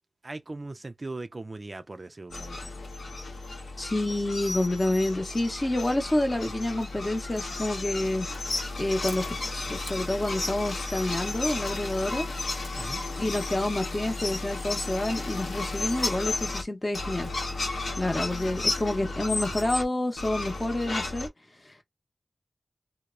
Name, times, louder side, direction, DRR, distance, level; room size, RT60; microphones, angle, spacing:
voice 1, 0.2-2.7 12.8-13.0, right 2 dB, 35° right, 0.3 m, -39 dB
sound 1, 2.3-16.6 16.9-19.8 20.2-21.3, left 2 dB, 80° left, 0.8 m, -33 dB
voice 2, 3.8-8.3 8.8-12.3 13.2-17.3 18.0-21.3, left 1 dB, 25° left, 0.8 m, -28 dB
2.9 x 2.0 x 2.4 m
wide cardioid pair, 115°, 0 cm